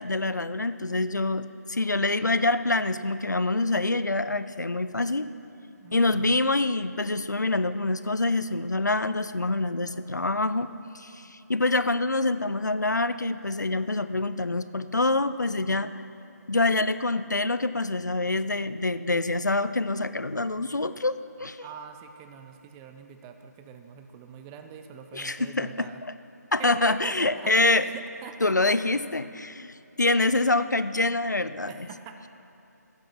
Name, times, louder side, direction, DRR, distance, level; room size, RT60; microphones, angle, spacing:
voice 1, 0.0-5.3 5.9-10.7 10.9-16.0 16.5-21.7 25.1-25.9 26.5-27.9 28.4-31.7, left 2 dB, 80° left, 13 dB, 0.6 m, -26 dB
voice 2, 5.8-6.4 21.6-26.0 26.6-28.8 31.7-32.3, right 7 dB, 10° right, 7 dB, 0.4 m, -44 dB
15.0 x 10.5 x 6.0 m, 2.7 s
figure-of-eight pair, 150°, 10 cm